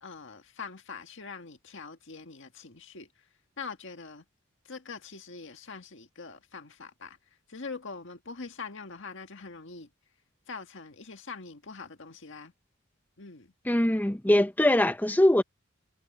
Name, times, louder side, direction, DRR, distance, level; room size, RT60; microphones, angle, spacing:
voice 1, 0.0-3.1 3.6-4.2 4.7-7.2 7.5-9.9 10.5-12.5 13.2-13.5, left 4 dB, 60° left, 1.8 m, -43 dB
voice 2, 13.7-15.4, left 1 dB, 10° left, 0.7 m, -22 dB
head